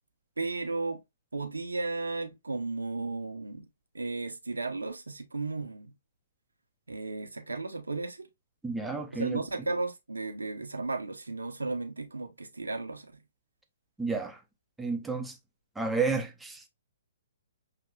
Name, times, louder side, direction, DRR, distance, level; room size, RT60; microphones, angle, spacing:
voice 1, 0.4-1.0 1.3-3.7 3.9-5.9 6.9-8.3 9.1-13.1, right 3 dB, 85° right, 0.8 m, -34 dB
voice 2, 8.6-9.4 14.0-14.4 14.8-15.4 15.8-16.7, right 4 dB, 5° right, 0.7 m, -31 dB
5.8 x 2.9 x 2.3 m
figure-of-eight pair, 125°, 0 cm